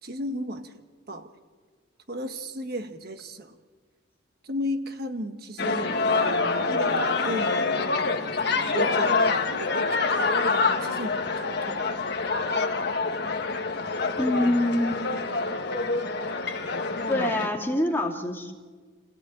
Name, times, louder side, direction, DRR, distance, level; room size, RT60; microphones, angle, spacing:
voice 1, 0.0-0.8 1.1-1.3 2.1-3.6 4.4-5.9 6.7-8.2 8.7-10.1 10.3-11.9, equal, 50° right, 6 dB, 1.4 m, -35 dB
sound 1, 5.6-17.5, left 3 dB, 55° left, 1.6 m, -26 dB
voice 2, 14.2-15.0 17.1-18.5, left 1 dB, 10° left, 0 dB, 2.6 m, -25 dB
29.5 x 17.5 x 9.1 m, 1.5 s
head